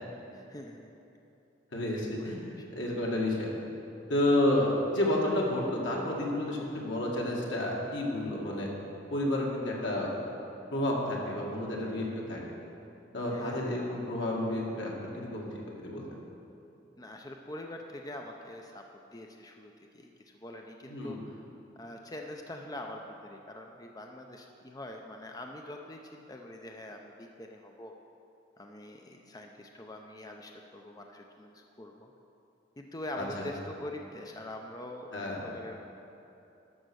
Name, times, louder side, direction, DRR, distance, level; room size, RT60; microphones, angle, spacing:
voice 1, 0.0-0.9 1.8-2.0 2.6-2.7 13.3-13.6 17.0-18.8 19.1-21.4 21.8-27.9 28.6-32.1 32.8-35.8, left 1 dB, 20° left, 2 dB, 0.5 m, -44 dB
voice 2, 1.7-3.5 4.1-8.7 9.1-10.1 10.7-12.4 13.1-15.4 15.8-16.0 20.8-21.2 33.2-33.5 35.1-35.4, left 1 dB, 80° left, -3 dB, 2.0 m, -30 dB
11.5 x 6.5 x 6.3 m, 2.8 s
head